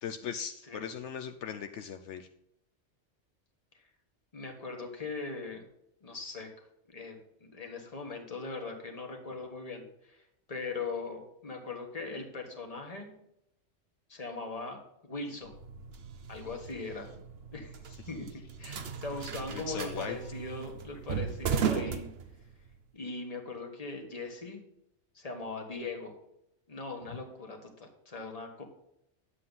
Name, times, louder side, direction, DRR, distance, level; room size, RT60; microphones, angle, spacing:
voice 1, 0.0-2.3 19.5-20.2 27.1-27.2, left 8 dB, 75° left, 7 dB, 1.0 m, -38 dB
voice 2, 4.3-5.6 6.0-6.5 6.9-10.2 10.5-13.1 14.1-15.6 16.3-17.1 17.5-17.7 18.1-22.1 22.9-24.6 25.1-26.2 26.7-28.6, left 3 dB, 30° left, 3 dB, 1.6 m, -40 dB
sound 1, 15.4-22.8, right 7 dB, 60° right, 1.0 m, -37 dB
9.9 x 7.6 x 4.0 m, 0.82 s
omnidirectional pair, 1.2 m